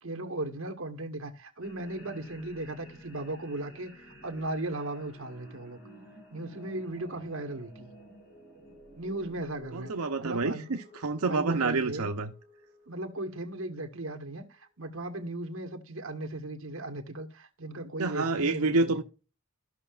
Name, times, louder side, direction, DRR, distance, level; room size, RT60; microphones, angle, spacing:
voice 1, 0.0-5.8 6.3-7.9 9.0-9.9 10.2-10.7 11.2-12.1 12.9-19.0, right 2 dB, 65° right, 1.4 m, -37 dB
sound 1, 1.6-14.3, equal, 50° left, 3.6 m, -53 dB
voice 2, 9.7-12.3 18.0-19.0, right 3 dB, 85° right, 0.7 m, -28 dB
14.5 x 5.8 x 2.4 m
head